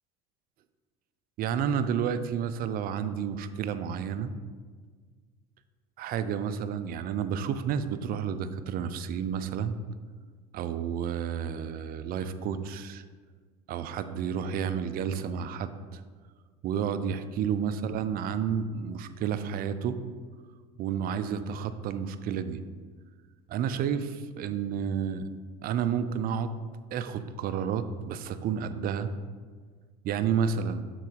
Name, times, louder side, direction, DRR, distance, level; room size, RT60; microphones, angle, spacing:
voice 1, 1.4-4.3 6.0-9.8 10.5-13.0 13.7-16.0 16.6-20.0 20.8-22.6 23.5-25.3 25.6-26.6 26.9-29.1 30.0-30.8, right 7 dB, 45° right, 11 dB, 0.5 m, -31 dB
6.9 x 3.8 x 4.6 m, 1.5 s
supercardioid pair, 90°, 20 cm